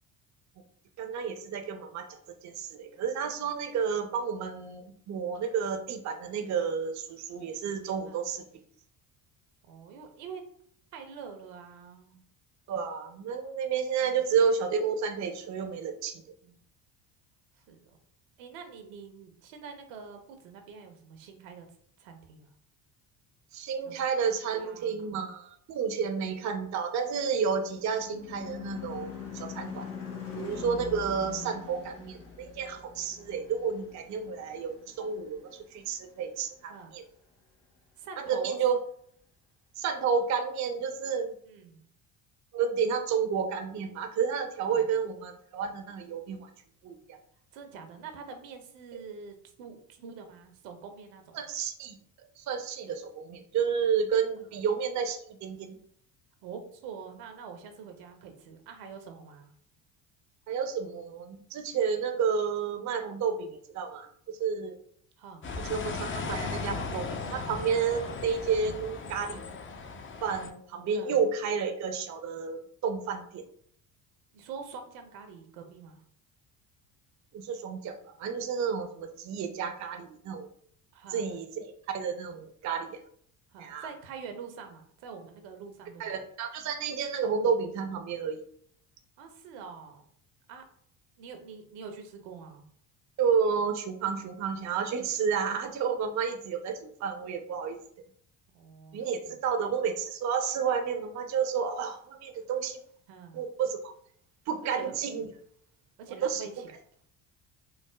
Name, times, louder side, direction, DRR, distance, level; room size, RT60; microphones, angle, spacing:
voice 1, 1.0-8.4 12.7-16.2 23.5-29.9 30.3-37.0 38.2-38.7 39.8-41.3 42.5-46.5 46.8-47.2 48.9-49.0 51.3-52.0 52.4-55.8 60.5-64.8 65.6-69.4 70.2-73.4 77.3-80.5 81.1-83.0 83.6-83.9 86.0-88.4 93.2-97.8 98.9-102.8 103.3-103.9 104.5-105.3 106.2-106.4, right 6 dB, 35° right, 6 dB, 0.5 m, -31 dB
voice 2, 9.6-10.5 10.9-12.2 14.0-14.2 16.4-16.6 17.6-18.0 18.4-21.7 22.0-22.5 23.8-24.0 24.5-25.3 25.9-26.1 31.4-31.6 36.7-36.9 38.0-38.6 41.5-41.9 44.6-44.9 47.5-51.4 56.4-59.5 65.2-65.5 70.9-71.2 74.3-76.0 80.9-81.4 83.5-86.3 89.2-90.0 90.5-90.6 91.2-92.7 98.5-99.4 103.1-103.4 104.7-105.0 106.0-106.7, right 6 dB, 75° right, 6 dB, 0.8 m, -45 dB
Car passing by / Truck / Engine, 26.9-35.6, left 6 dB, 75° left, 1.1 m, -42 dB
Bus leaving and passing cars, 65.4-70.5, left 4 dB, 25° left, 0.5 m, -37 dB
4.7 x 2.0 x 2.2 m, 0.63 s
hypercardioid pair, 65°, 49 cm